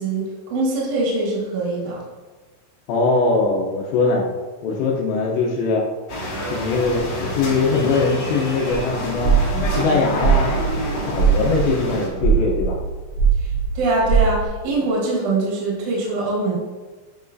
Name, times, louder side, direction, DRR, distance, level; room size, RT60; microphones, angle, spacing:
voice 1, 0.0-2.0 13.7-16.5, right 2 dB, 55° right, -5 dB, 2.3 m, -23 dB
voice 2, 2.9-4.2 4.6-5.8 6.5-9.4 9.7-10.5 11.1-12.8, left 3 dB, 80° left, -2 dB, 2.6 m, -21 dB
sound 1, 6.1-12.1, equal, 50° left, 1.6 m, -28 dB
sound 2, 8.7-8.8 9.2-9.8 10.1-11.7 12.2-12.8 13.0-13.6 14.0-14.5, right 6 dB, 85° right, 4.4 m, -18 dB
9.4 x 5.3 x 2.7 m, 1.3 s
omnidirectional pair, 5.9 m